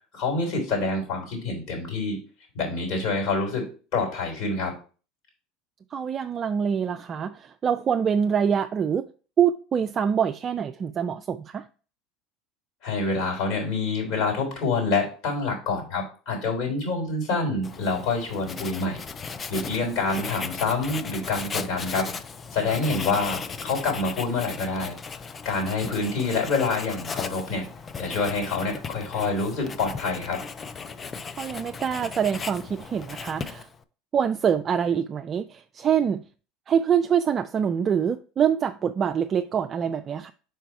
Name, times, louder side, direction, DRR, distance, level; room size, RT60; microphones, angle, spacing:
voice 1, 0.1-2.2 2.5-4.7 12.8-19.0 19.5-22.1 22.5-25.0 25.4-27.7 28.0-30.4, left 3 dB, 65° left, 3.6 m, -27 dB
voice 2, 5.9-9.0 9.4-11.7 31.4-33.7 34.1-36.3 36.7-40.3, right 8 dB, 35° right, 0.3 m, -25 dB
Writing, 17.6-33.8, left 5 dB, 30° left, 0.5 m, -37 dB
4.9 x 4.6 x 4.5 m
hypercardioid pair, 80°, 0 cm